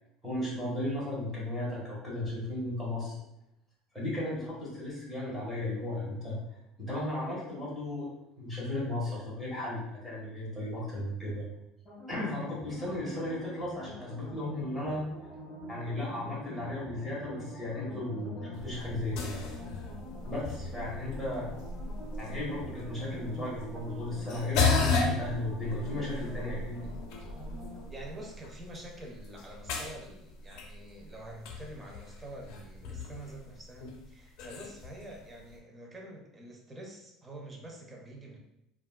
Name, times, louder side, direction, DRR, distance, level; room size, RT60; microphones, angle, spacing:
voice 1, 0.2-3.1 3.9-6.4 6.8-11.4 12.1-15.0 15.7-19.4 20.2-21.5 22.2-26.9, left 1 dB, ahead, -7 dB, 1.1 m, -35 dB
sound 1, 11.9-27.8, left 1 dB, 25° left, 1.3 m, -45 dB
sound 2, 18.5-35.6, left 4 dB, 65° left, 0.5 m, -35 dB
voice 2, 27.9-38.4, right 1 dB, 15° right, 0 dB, 0.5 m, -46 dB
3.3 x 2.3 x 2.2 m, 0.83 s
cardioid pair, 150°, 0 cm